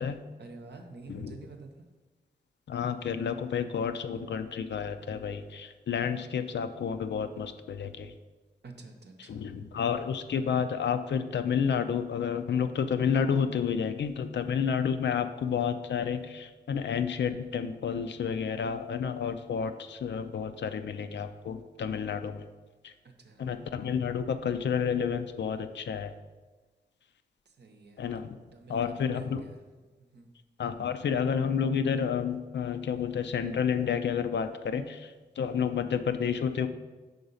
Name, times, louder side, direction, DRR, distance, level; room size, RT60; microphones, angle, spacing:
voice 1, 0.4-1.8 8.6-9.4 23.0-23.4 27.5-28.0 28.5-29.6 30.0-30.3, right 3 dB, 75° right, 5 dB, 0.7 m, -49 dB
voice 2, 2.7-8.1 9.2-22.4 22.8-22.9 23.4-26.1 28.0-28.4 28.7-29.4 30.6-36.7, left 7 dB, 80° left, 9 dB, 0.4 m, -30 dB
5.1 x 3.9 x 5.4 m, 1.3 s
wide cardioid pair, 65°, 18 cm